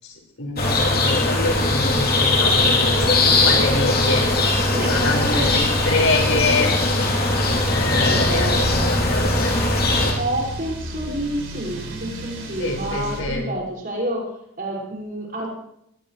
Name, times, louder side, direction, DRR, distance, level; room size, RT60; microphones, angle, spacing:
voice 1, 0.0-4.3 4.7-6.7 7.7-10.1 12.6-13.4, left 3 dB, 70° left, 0 dB, 5.3 m, -26 dB
sound 1, 0.6-10.1, left 2 dB, 45° left, 3.4 m, -20 dB
voice 2, 4.7-5.5 8.0-8.9 10.2-15.5, right 1 dB, 40° right, -2 dB, 5.8 m, -29 dB
sound 2, 4.9-13.2, right 1 dB, 60° right, 5.8 m, -32 dB
22.0 x 19.5 x 3.3 m, 0.79 s
head